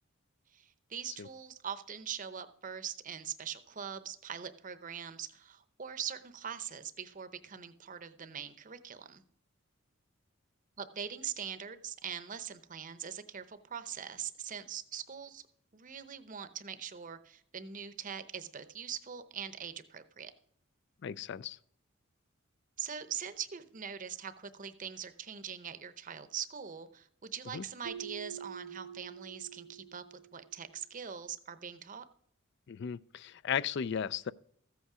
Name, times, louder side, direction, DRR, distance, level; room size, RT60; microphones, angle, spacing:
voice 1, 0.5-9.2 10.8-15.4 15.7-20.3 22.8-30.0 30.3-32.0, right 8 dB, 40° right, 0.7 m, -42 dB
voice 2, 21.0-21.6 27.5-27.6 32.7-34.3, left 7 dB, 55° left, 0.4 m, -35 dB
Keyboard (musical), 27.8-30.6, right 7 dB, 80° right, 0.5 m, -46 dB
14.5 x 8.2 x 4.9 m
head